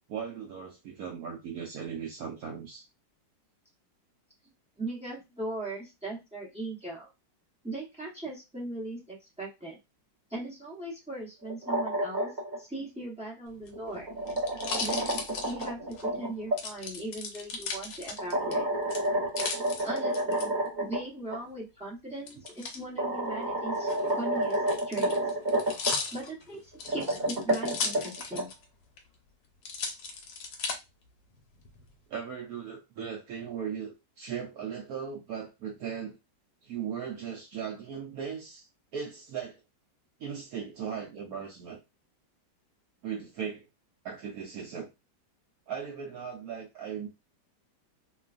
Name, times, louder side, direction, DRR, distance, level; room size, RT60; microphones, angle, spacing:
voice 1, 0.1-2.9 32.1-36.2 36.6-38.7 38.9-39.6 40.2-41.8 43.0-43.6 44.0-44.9 45.7-47.1, right 7 dB, 75° right, 0 dB, 0.8 m, -38 dB
voice 2, 4.8-7.1 7.6-9.8 10.3-12.3 12.6-14.1 14.8-18.7 19.5-20.5 20.8-25.3 26.1-28.5, right 1 dB, 10° right, -4 dB, 0.3 m, -39 dB
sound 1, 11.4-12.6 13.7-16.6 18.2-21.0 21.3-21.4 22.4-22.5 23.0-25.9 26.7-28.4, right 1 dB, 35° right, 0.7 m, -30 dB
sound 2, 13.5-16.0 16.6-18.5 18.9-20.4 22.3-22.8 23.7-28.6 29.0-29.1 29.6-30.8 31.4-31.9, left 5 dB, 80° left, 1.4 m, -36 dB
3.1 x 2.3 x 2.4 m, 0.24 s
omnidirectional pair, 2.0 m